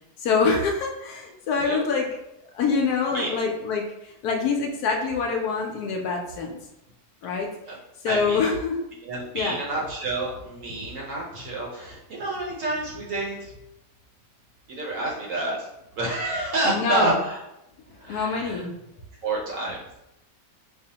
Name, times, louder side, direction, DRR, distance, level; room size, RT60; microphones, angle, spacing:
voice 1, 0.2-2.1 2.5-6.6 7.2-7.5 8.0-8.8 9.3-9.6 16.6-17.2 18.1-18.8, left 4 dB, 70° left, 1 dB, 1.0 m, -25 dB
voice 2, 8.1-8.5 9.0-13.5 14.7-15.7 15.9-17.4 18.0-18.7 19.2-19.8, right 2 dB, 60° right, -3 dB, 0.9 m, -29 dB
5.2 x 2.1 x 2.8 m, 0.88 s
omnidirectional pair, 1.9 m